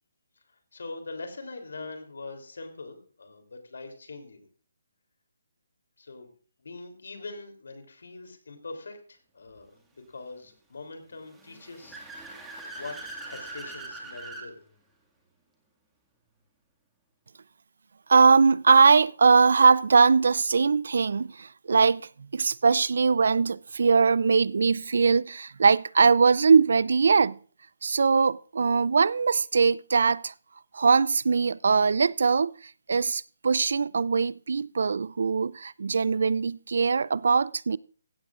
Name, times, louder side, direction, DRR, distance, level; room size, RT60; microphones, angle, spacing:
voice 1, 0.7-4.5 6.0-6.3 6.6-12.3 12.6-14.6, left 3 dB, 70° left, 3.3 m, -42 dB
Car / Accelerating revving vroom, 11.3-14.5, right 2 dB, 5° right, 2.1 m, -41 dB
voice 2, 18.1-27.4 27.8-30.3 30.7-37.8, right 5 dB, 65° right, 0.4 m, -21 dB
16.0 x 13.5 x 2.5 m
figure-of-eight pair, 150°, 0 cm